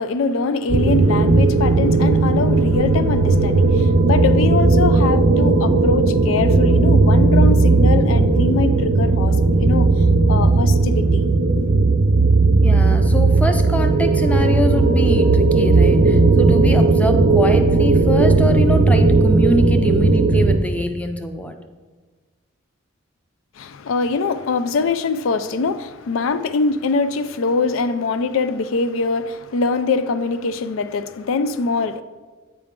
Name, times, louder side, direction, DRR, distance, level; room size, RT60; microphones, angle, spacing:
voice 1, 0.0-9.9 10.3-11.6 23.6-32.0, left 4 dB, 90° left, 0.4 m, -23 dB
sound 1, 0.7-20.6, right 3 dB, 75° right, 0.5 m, -15 dB
voice 2, 12.6-21.6, equal, 5° left, 0.4 m, -24 dB
8.4 x 4.8 x 3.6 m
head